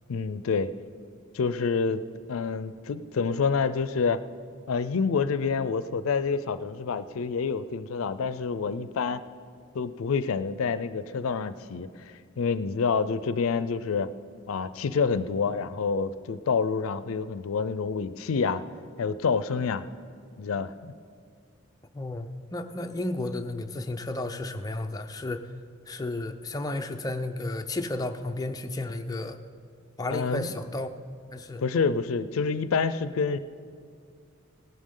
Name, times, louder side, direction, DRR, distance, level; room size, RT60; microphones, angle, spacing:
voice 1, 0.1-0.7 1.3-2.0 2.3-4.2 4.7-9.2 9.7-14.1 14.5-18.6 19.0-19.8 20.4-20.9 30.1-30.5 31.6-33.4, left 5 dB, 80° left, 13 dB, 0.4 m, -27 dB
voice 2, 21.9-25.5 25.9-29.4 30.0-30.9 31.3-31.6, left 2 dB, 20° left, 5 dB, 0.5 m, -33 dB
18.0 x 11.5 x 3.8 m, 2.3 s
head